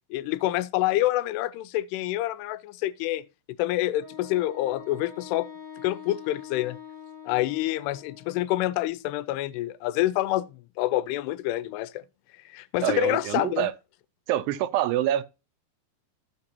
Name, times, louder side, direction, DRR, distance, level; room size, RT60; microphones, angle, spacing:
voice 1, 0.1-3.2 3.6-5.5 5.8-6.8 7.3-10.5 10.8-12.0 12.5-13.7, left 15 dB, 90° left, 2.6 m, -27 dB
Wind instrument woodwind instrument, 4.0-8.6, left 8 dB, 65° left, 2.2 m, -44 dB
voice 2, 12.8-13.7 14.3-15.2, right 12 dB, 85° right, 2.7 m, -26 dB
15.0 x 5.2 x 2.8 m
omnidirectional pair, 4.6 m